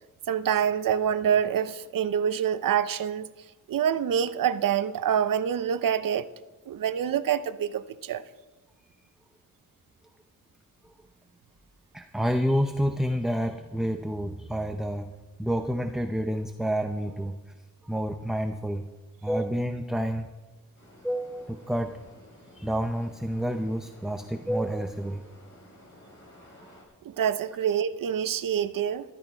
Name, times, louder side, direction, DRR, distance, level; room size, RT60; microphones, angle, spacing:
voice 1, 0.3-3.3 3.7-6.3 6.7-8.2 27.0-29.0, right 8 dB, 75° right, 0.7 m, -26 dB
voice 2, 11.9-15.1 15.4-17.4 17.8-18.8 19.2-20.3 21.0-22.0 22.6-25.2, equal, ahead, 0.6 m, -29 dB
sound 1, 20.8-26.8, left 1 dB, 35° left, 4.5 m, -53 dB
13.5 x 12.5 x 4.5 m
wide cardioid pair, 135°, 33 cm